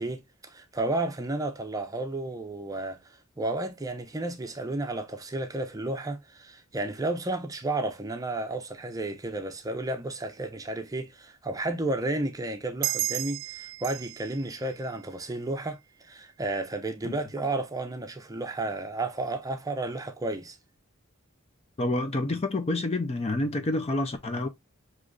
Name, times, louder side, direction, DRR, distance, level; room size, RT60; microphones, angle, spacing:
voice 1, 0.0-20.6, right 2 dB, 15° right, 0.7 m, -32 dB
sound 1, 12.8-15.9, right 17 dB, 65° right, 0.4 m, -35 dB
voice 2, 21.8-24.5, left 2 dB, 30° left, 0.5 m, -28 dB
6.4 x 3.1 x 2.3 m
head